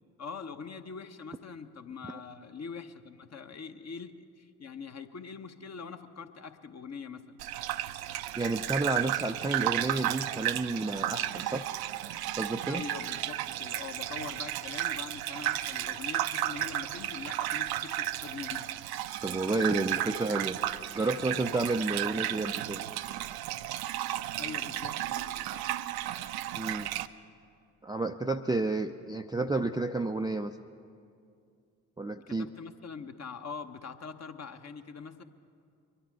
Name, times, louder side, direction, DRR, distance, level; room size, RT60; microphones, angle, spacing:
voice 1, 0.2-7.4 12.7-18.7 24.4-25.6 26.2-26.3 28.8-28.9 32.3-35.2, left 5 dB, 35° left, 7 dB, 1.0 m, -43 dB
Gurgling / Bathtub (filling or washing), 7.4-27.1, right 14 dB, 55° right, 0.6 m, -33 dB
voice 2, 8.4-11.7 12.4-12.9 19.2-20.6 20.9-22.8 26.6-26.9 27.8-30.5 32.0-32.5, right 2 dB, 10° right, 5 dB, 0.5 m, -31 dB
23.5 x 11.0 x 4.6 m, 2.4 s
figure-of-eight pair, 40°, 45 cm